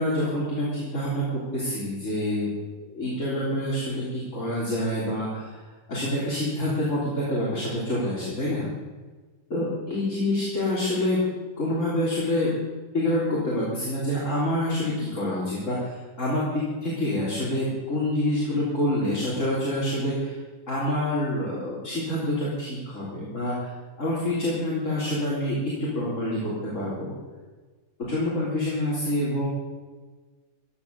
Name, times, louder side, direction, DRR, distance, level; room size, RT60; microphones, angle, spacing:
voice 1, 0.0-2.5 2.9-5.6 5.9-8.7 9.5-11.2 11.6-12.5 12.9-20.3 20.7-23.7 24.0-27.1 28.1-29.5, left 1 dB, 60° left, -7 dB, 4.0 m, -27 dB
16.0 x 10.5 x 6.8 m, 1.3 s
omnidirectional pair, 1.5 m